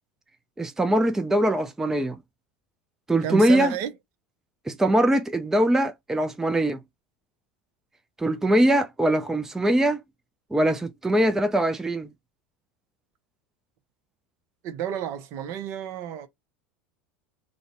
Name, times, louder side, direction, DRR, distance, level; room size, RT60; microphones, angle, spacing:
voice 1, 0.6-2.2 3.1-3.7 4.7-6.8 8.2-10.0 10.5-12.1, right 1 dB, 10° right, 0.3 m, -22 dB
voice 2, 3.2-3.9 14.6-16.3, right 9 dB, 55° right, 0.6 m, -30 dB
2.5 x 2.1 x 2.5 m
hypercardioid pair, 85°, 6 cm